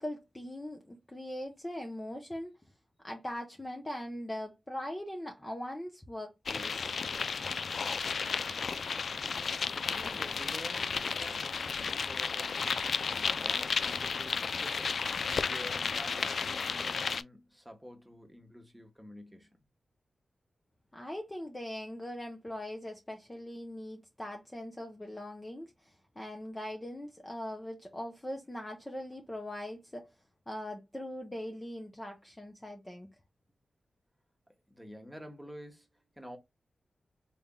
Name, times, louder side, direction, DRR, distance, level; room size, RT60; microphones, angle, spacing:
voice 1, 0.0-2.5 3.0-6.9 20.9-30.1 30.5-33.1, left 1 dB, 15° left, 0.8 m, -41 dB
sound 1, 6.5-17.2, left 5 dB, 65° left, 0.3 m, -33 dB
voice 2, 9.8-15.1 15.4-19.5 34.7-36.4, equal, 5° right, 1.3 m, -49 dB
4.0 x 3.4 x 2.2 m
wide cardioid pair, 95°, 0 cm